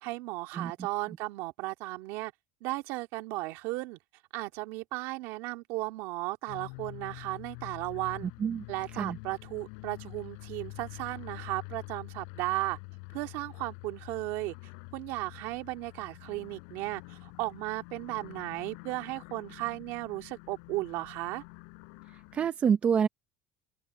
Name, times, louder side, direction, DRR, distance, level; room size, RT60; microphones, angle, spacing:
voice 1, 0.0-2.3 2.6-4.0 4.3-8.3 8.7-12.8 13.1-14.5 14.9-21.4, right 20 dB, 65° right, 2.0 m, -35 dB
sound 1, 6.5-22.5, left 40 dB or more, 75° left, 7.8 m, -47 dB
voice 2, 22.3-23.1, right 7 dB, 25° right, 0.7 m, -26 dB
open air
cardioid pair, 150°, 5 cm